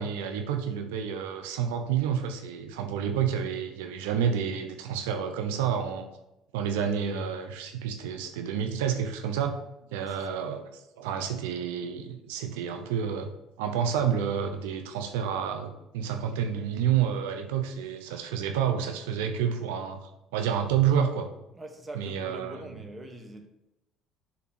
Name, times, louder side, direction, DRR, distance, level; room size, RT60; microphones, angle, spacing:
voice 1, 0.0-6.1 6.5-9.6 9.9-10.7 11.0-13.3 13.6-21.3 21.9-22.8, right 8 dB, 90° right, 0.7 m, -29 dB
voice 2, 9.9-10.4 21.5-23.5, right 1 dB, 20° right, 1.2 m, -43 dB
7.2 x 3.7 x 6.1 m
supercardioid pair, 85°, 0 cm